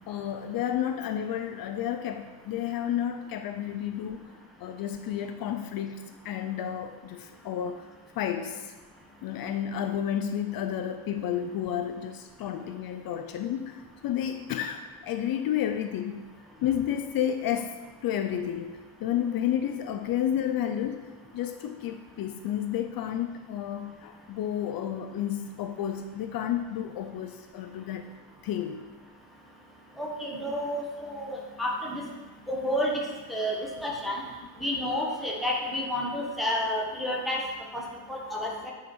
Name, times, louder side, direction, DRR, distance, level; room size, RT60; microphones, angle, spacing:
voice 1, 0.1-4.2 4.6-7.9 8.2-8.7 9.2-16.2 16.6-17.7 18.0-21.1 21.3-28.1 28.4-28.8, left 10 dB, 60° left, 7 dB, 0.5 m, -31 dB
voice 2, 30.0-32.0 32.5-33.0 33.3-33.6 33.8-34.2 34.6-37.4 37.7-37.8 38.1-38.7, left 1 dB, ahead, -4 dB, 1.3 m, -30 dB
9.3 x 5.1 x 4.3 m, 1.3 s
cardioid pair, 150°, 39 cm